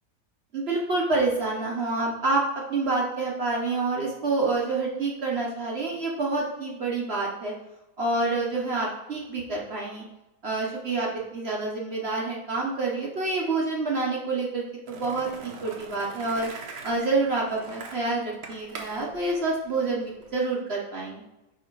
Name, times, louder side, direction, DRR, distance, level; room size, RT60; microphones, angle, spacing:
voice 1, 0.5-2.4 2.7-7.5 8.0-10.0 10.4-16.5 16.8-21.2, right 3 dB, 50° right, -3 dB, 0.9 m, -27 dB
Skateboard, 14.9-20.3, right 4 dB, 70° right, 1.3 m, -42 dB
4.9 x 4.8 x 4.5 m, 0.97 s
omnidirectional pair, 1.7 m